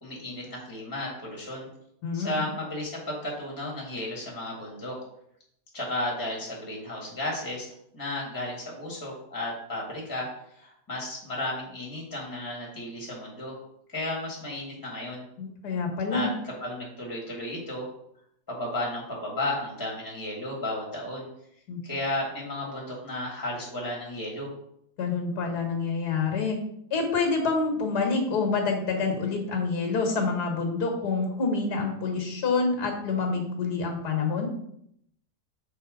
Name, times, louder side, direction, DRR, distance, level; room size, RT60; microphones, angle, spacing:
voice 1, 0.0-1.7 2.1-5.0 5.7-10.3 10.6-13.6 13.9-15.2 16.1-17.9 18.5-21.3 21.8-24.5, left 1 dB, 10° left, -2 dB, 1.8 m, -33 dB
voice 2, 2.0-2.4 15.4-16.3 21.7-21.8 25.0-26.6 26.9-34.5, left 4 dB, 75° left, 2 dB, 2.0 m, -27 dB
6.0 x 4.3 x 5.0 m, 0.73 s
omnidirectional pair, 1.8 m